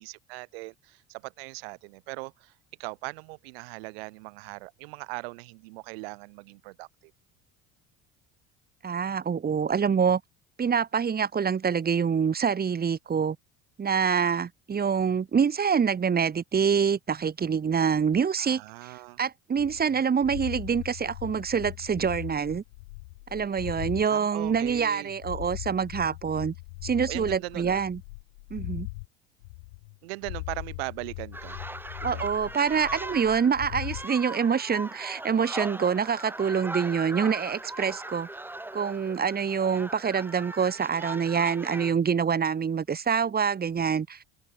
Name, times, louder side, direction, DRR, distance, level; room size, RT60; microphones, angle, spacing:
voice 1, 0.0-7.1 18.4-19.2 23.3-23.5 24.1-25.1 27.1-27.8 30.0-31.6 32.0-32.3 43.2-43.4, right 26 dB, 85° right, 6.0 m, -40 dB
voice 2, 8.8-10.2 10.6-13.4 13.8-22.6 23.3-26.5 26.8-28.0 28.5-28.9 32.0-38.3 38.7-44.2, right 6 dB, 30° right, 2.6 m, -26 dB
sound 1, 19.6-24.1 24.4-29.1 29.4-30.0 30.2-34.1, left 26 dB, 85° left, 4.4 m, -40 dB
sound 2, 31.3-41.9, right 2 dB, 5° right, 1.5 m, -39 dB
supercardioid pair, 85°, 30 cm